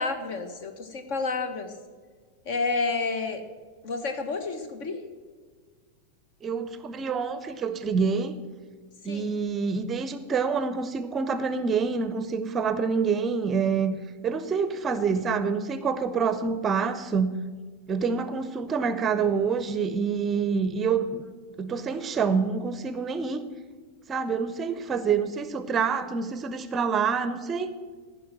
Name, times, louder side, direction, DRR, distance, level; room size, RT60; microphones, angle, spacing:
voice 1, 0.0-1.8 2.4-3.4 3.8-5.0 9.0-9.3, left 4 dB, 50° left, 8 dB, 1.4 m, -30 dB
voice 2, 6.4-8.4 9.0-14.0 14.2-17.4 17.9-21.2 21.6-23.4 24.1-27.7, right 5 dB, 25° right, 12 dB, 0.7 m, -27 dB
14.5 x 5.7 x 7.3 m, 1.5 s
figure-of-eight pair, 90°, 0 cm